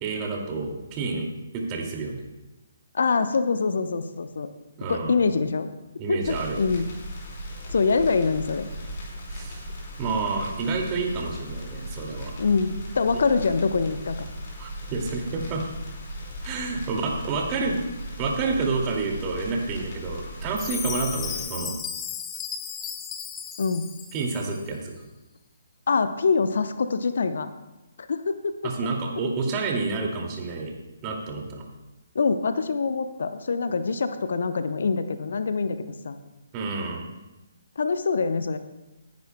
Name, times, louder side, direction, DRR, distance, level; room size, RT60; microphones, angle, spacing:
voice 1, 0.0-1.3 1.5-2.2 4.8-5.2 6.0-6.6 9.3-9.7 10.0-12.3 14.6-15.7 16.4-17.8 18.2-21.7 24.1-24.9 28.6-30.7 31.0-31.6 36.5-37.1, right 4 dB, 25° right, 1 dB, 2.3 m, -29 dB
voice 2, 2.9-4.5 4.9-5.7 6.1-6.9 7.7-8.7 12.4-14.3 23.6-23.9 25.9-27.5 28.1-28.5 32.1-35.8 36.0-36.2 37.8-38.6, left 4 dB, 60° left, 10 dB, 0.7 m, -24 dB
sound 1, 6.2-21.4, equal, 40° left, 3.4 m, -37 dB
Chime, 20.6-24.6, left 7 dB, 15° left, 0.7 m, -35 dB
24.0 x 10.5 x 2.2 m, 1.0 s
figure-of-eight pair, 135°, 0 cm